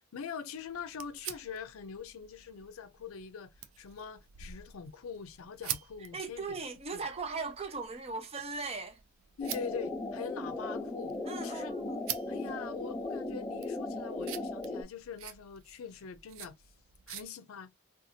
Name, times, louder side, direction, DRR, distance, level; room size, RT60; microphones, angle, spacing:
voice 1, 0.1-6.6 6.9-7.1 9.4-11.1 11.4-11.8 12.3-16.5 17.1-17.7, left 6 dB, 90° left, 0.4 m, -43 dB
sound 1, 0.5-17.2, right 11 dB, 80° right, 0.4 m, -47 dB
voice 2, 6.1-9.0 11.3-12.0, right 4 dB, 30° right, 0.5 m, -38 dB
sound 2, 9.4-14.8, left 2 dB, 15° left, 0.5 m, -37 dB
2.7 x 2.3 x 2.7 m
head